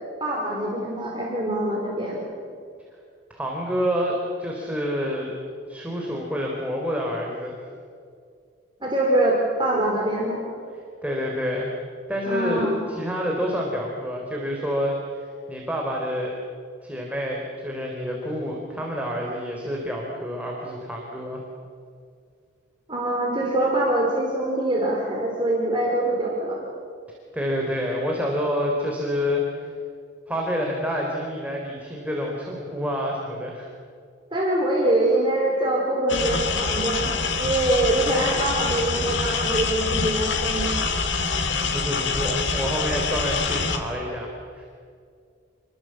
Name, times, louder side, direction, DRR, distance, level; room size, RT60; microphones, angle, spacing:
voice 1, 0.2-2.3 8.8-10.4 12.2-12.8 22.9-26.6 34.3-40.7, right 1 dB, 25° right, -3 dB, 4.3 m, -24 dB
voice 2, 3.3-5.3 5.7-7.6 11.0-11.7 12.1-16.3 16.8-21.4 27.3-29.7 30.3-33.7 41.4-44.7, equal, 5° right, -1 dB, 3.6 m, -28 dB
sound 1, 36.1-43.8, left 4 dB, 65° left, 2.7 m, -25 dB
29.0 x 22.5 x 7.7 m, 2.3 s
head